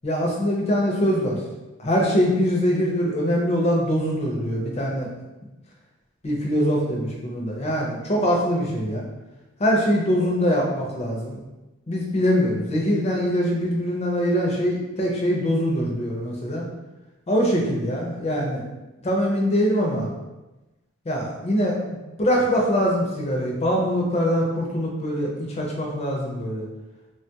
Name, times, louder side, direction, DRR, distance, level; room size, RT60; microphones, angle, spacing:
voice 1, 0.0-1.4 1.8-5.1 6.2-9.0 9.6-11.4 11.9-16.6 17.3-18.6 19.0-20.1 21.1-21.8 22.2-26.7, equal, 30° left, -1 dB, 0.5 m, -23 dB
3.2 x 2.2 x 2.8 m, 1.1 s
head